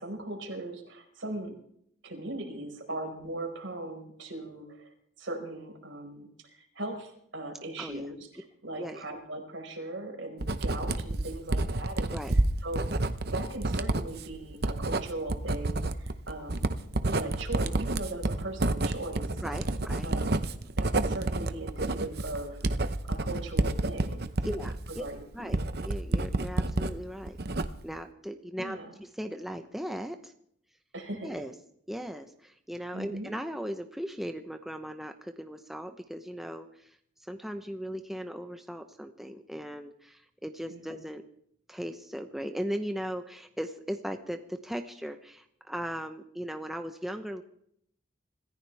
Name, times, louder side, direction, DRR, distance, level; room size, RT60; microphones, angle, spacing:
voice 1, 0.0-1.5 2.0-4.9 5.2-12.1 12.6-12.8 13.3-16.7 17.1-19.3 20.0-20.5 20.8-22.6 23.1-24.2 25.0-25.5 28.6-28.9 30.9-31.3 32.9-33.3 40.7-41.0, right 2 dB, 75° right, 2 dB, 5.0 m, -39 dB
Writing, 10.4-26.9 27.3-28.0, right 2 dB, 50° right, 0.9 m, -29 dB
voice 2, 19.4-20.1 24.4-25.0 25.3-27.4 27.8-30.3 31.2-31.5 31.9-37.0 37.3-41.2 41.7-47.4, equal, ahead, 5 dB, 0.8 m, -38 dB
26.0 x 15.0 x 3.5 m, 0.68 s
head